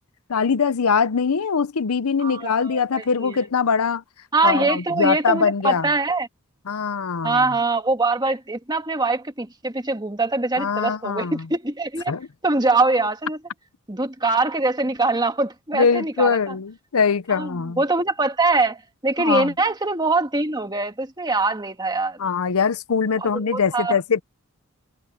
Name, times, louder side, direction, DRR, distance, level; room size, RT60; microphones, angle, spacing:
voice 1, 0.3-4.0 4.4-5.9 6.7-7.5 10.6-11.5 12.1-12.3 15.7-17.8 19.2-19.5 22.2-24.2, left 5 dB, 85° left, 0.7 m, -22 dB
voice 2, 2.2-3.4 4.3-6.3 7.2-12.1 12.4-13.4 13.9-16.5 17.3-22.2 23.2-24.0, right 3 dB, 20° right, 1.8 m, -23 dB
head